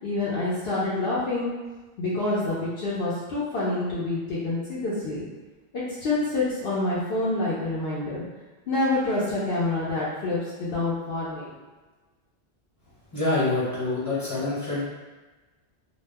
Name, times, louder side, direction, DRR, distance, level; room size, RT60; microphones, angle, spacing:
voice 1, 0.0-1.5 2.0-5.2 5.7-8.2 8.7-11.5, left 2 dB, 65° left, -8 dB, 0.8 m, -27 dB
voice 2, 13.1-14.9, left 2 dB, 15° left, -9 dB, 1.0 m, -26 dB
2.3 x 2.0 x 3.3 m, 1.2 s
omnidirectional pair, 1.1 m